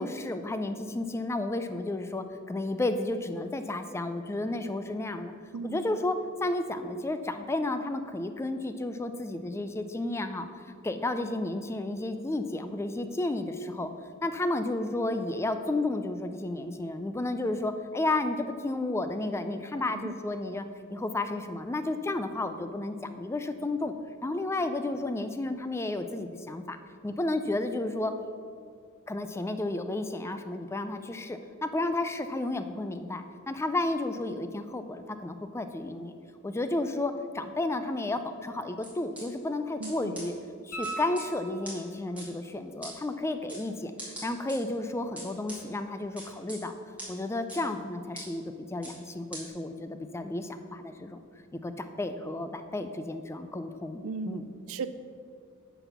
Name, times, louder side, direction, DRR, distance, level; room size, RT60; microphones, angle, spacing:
voice 1, 0.0-5.3 5.6-13.9 14.2-20.7 20.9-23.9 24.2-26.8 27.0-28.1 29.1-36.1 36.4-40.3 40.6-46.7 47.1-51.2 51.5-54.5, left 2 dB, 10° left, 9 dB, 0.3 m, -32 dB
voice 2, 5.5-6.0 19.9-20.2 39.8-40.2 54.0-54.4 54.7-54.9, right 4 dB, 65° right, 12 dB, 0.4 m, -37 dB
sound 1, 38.8-39.2 39.8-39.9 40.1-40.2 40.8-41.2 41.6-41.7 42.2-42.3 42.8-42.9 43.5-43.6 44.0-44.6 45.2-45.6 46.2-46.6 47.0-47.1 47.5-47.6 48.1-48.2 48.8-48.9 49.3-49.4, right 1 dB, 5° right, 2.5 m, -41 dB
sound 2, 40.7-42.0 44.8-44.9, right 3 dB, 65° left, 2.0 m, -39 dB
10.0 x 4.1 x 6.7 m, 2.3 s
head